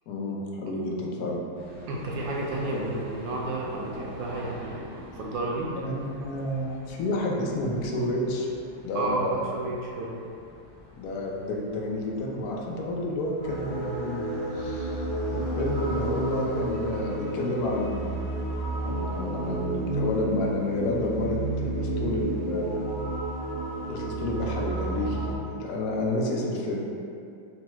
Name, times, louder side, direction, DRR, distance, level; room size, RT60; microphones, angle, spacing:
voice 1, 0.1-1.4 2.7-2.8 5.8-8.5 8.8-9.5 10.9-14.3 14.5-15.0 15.3-18.1 18.6-22.8 23.9-26.8, left 1 dB, 85° left, -2 dB, 0.8 m, -30 dB
sound 1, 1.5-17.0, equal, 50° left, 1.0 m, -47 dB
voice 2, 1.9-5.7 8.9-10.2, right 2 dB, 75° right, -2 dB, 1.1 m, -31 dB
sound 2, 13.4-25.3, right 2 dB, 40° right, 0.9 m, -31 dB
5.2 x 2.3 x 2.9 m, 2.5 s
omnidirectional pair, 2.2 m